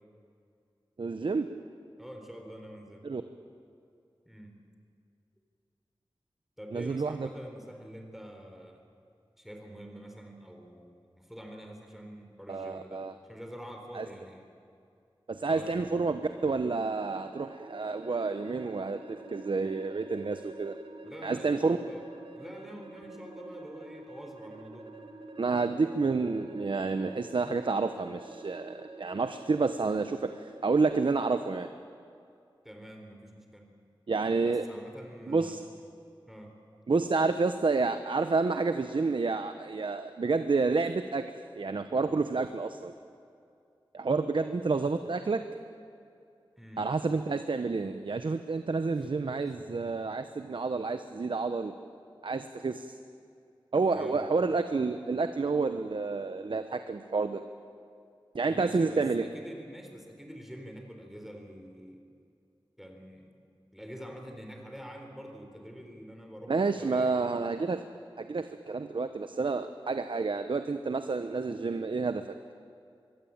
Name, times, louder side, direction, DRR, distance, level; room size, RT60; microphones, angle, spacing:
voice 1, 1.0-1.5 3.0-3.2 6.7-7.3 12.5-13.1 13.9-14.1 15.3-20.8 21.2-21.8 25.4-31.7 34.1-34.7 35.3-35.6 36.9-42.9 43.9-45.4 46.8-51.7 52.2-53.0 53.7-57.4 58.3-59.3 66.5-67.8 68.2-72.3, right 4 dB, 65° right, 9 dB, 1.0 m, -29 dB
voice 2, 2.0-3.0 4.3-4.5 6.6-8.8 9.4-14.5 15.5-15.7 21.0-22.1 22.3-24.9 32.6-33.7 34.4-35.7 36.2-36.5 46.6-46.9 49.0-49.1 49.5-49.6 54.0-54.2 58.4-62.0 62.8-63.3 63.7-67.3, equal, 5° right, 3 dB, 4.2 m, -46 dB
sound 1, 15.8-30.8, right 2 dB, 85° right, 2.4 m, -48 dB
24.0 x 22.0 x 8.8 m, 2.5 s
wide cardioid pair, 60°, 9 cm